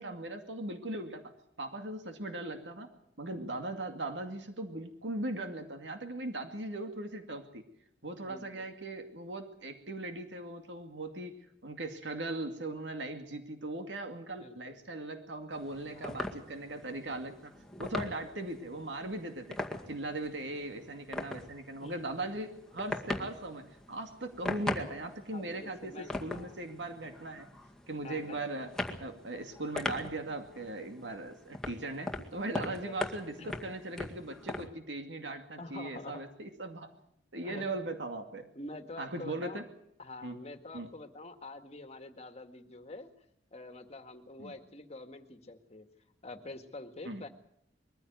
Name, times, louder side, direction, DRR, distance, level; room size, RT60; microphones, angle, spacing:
voice 1, 0.0-1.3 1.6-2.9 3.2-7.6 8.0-17.5 17.8-19.6 19.9-27.5 27.9-28.7 29.0-36.9 37.3-38.5 39.0-39.6 40.2-40.4 40.7-40.9 44.4-44.5 47.1-47.2, right 2 dB, 85° right, 6 dB, 2.3 m, -39 dB
voice 2, 8.2-8.7 14.4-14.8 15.9-16.3 18.0-18.4 21.8-22.3 25.3-26.6 28.0-28.4 32.5-33.0 33.4-33.5 35.6-36.2 37.4-37.8 38.6-39.6 40.0-43.1 43.5-45.9 46.2-47.3, left 2 dB, 35° left, 7 dB, 1.9 m, -47 dB
sound 1, 15.5-34.7, left 2 dB, 5° left, 2.0 m, -41 dB
22.0 x 15.0 x 9.4 m, 0.73 s
head